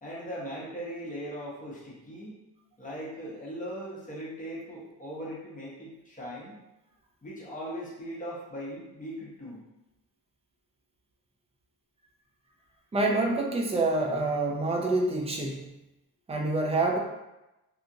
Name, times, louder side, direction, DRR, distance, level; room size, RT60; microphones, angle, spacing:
voice 1, 0.0-2.4 2.8-6.6 7.2-9.7, equal, 20° left, -5 dB, 0.8 m, -39 dB
voice 2, 12.9-15.7 16.3-17.0, right 2 dB, 15° right, 1 dB, 0.3 m, -27 dB
2.8 x 2.4 x 2.5 m, 0.97 s
cardioid pair, 125°, 39 cm